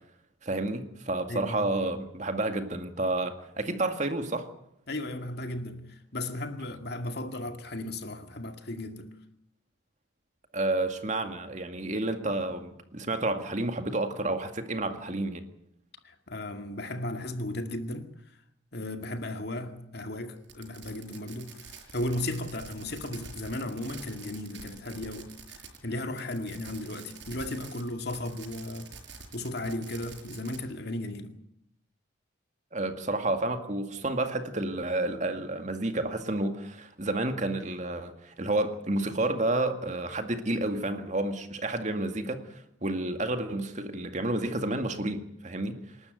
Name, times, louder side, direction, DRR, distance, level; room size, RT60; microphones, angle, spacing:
voice 1, 0.4-4.5 10.5-15.4 32.7-45.8, right 2 dB, 40° right, 2.1 m, -30 dB
voice 2, 1.3-1.7 4.9-9.1 16.0-18.1 18.7-28.9 29.3-31.4, left 1 dB, 55° left, 2.2 m, -35 dB
Fireworks, 20.4-25.8 26.1-30.6, right 5 dB, 65° right, 5.8 m, -47 dB
27.5 x 12.5 x 9.3 m
head